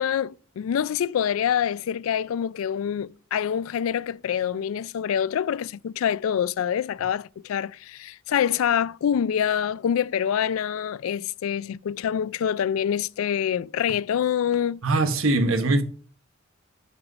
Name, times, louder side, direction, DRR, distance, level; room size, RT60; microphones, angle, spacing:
voice 1, 0.0-14.8, left 8 dB, 75° left, 0.3 m, -26 dB
voice 2, 14.8-15.8, right 2 dB, 75° right, 1.1 m, -21 dB
6.0 x 5.5 x 6.1 m
head